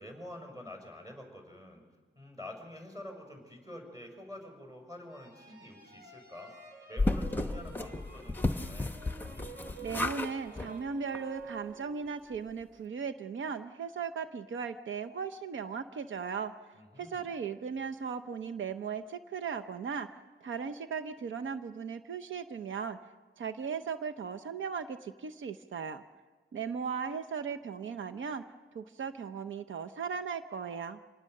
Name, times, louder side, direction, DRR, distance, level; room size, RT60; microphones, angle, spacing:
voice 1, 0.0-1.8 2.1-6.5 6.9-9.0 16.7-17.3, left 1 dB, 20° right, 3 dB, 6.0 m, -47 dB
sound 1, 5.1-12.3, right 3 dB, 55° right, 6.4 m, -50 dB
sound 2, 7.0-10.3 10.6-10.7 11.1-11.2 11.5-11.6, left 2 dB, 10° left, 0.9 m, -33 dB
voice 2, 9.8-16.5 17.0-20.1 20.4-23.0 23.4-26.0 26.5-28.4 28.7-31.0, right 6 dB, 70° right, 8 dB, 0.8 m, -37 dB
26.5 x 19.5 x 6.6 m, 1.4 s
wide cardioid pair, 135°, 20 cm